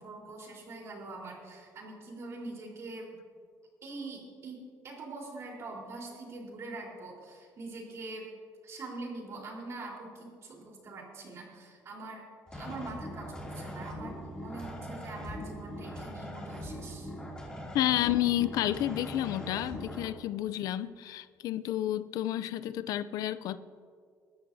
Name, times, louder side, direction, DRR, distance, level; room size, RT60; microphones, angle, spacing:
voice 1, 0.0-3.2 3.8-8.3 8.6-12.3 12.5-17.1, right 2 dB, 45° right, -1 dB, 3.9 m, -43 dB
sound 1, 12.5-20.1, equal, 15° left, 2.7 m, -41 dB
voice 2, 17.7-23.6, left 13 dB, 75° left, 15 dB, 0.4 m, -30 dB
21.0 x 13.5 x 2.7 m, 2.1 s
cardioid pair, 120°, 6 cm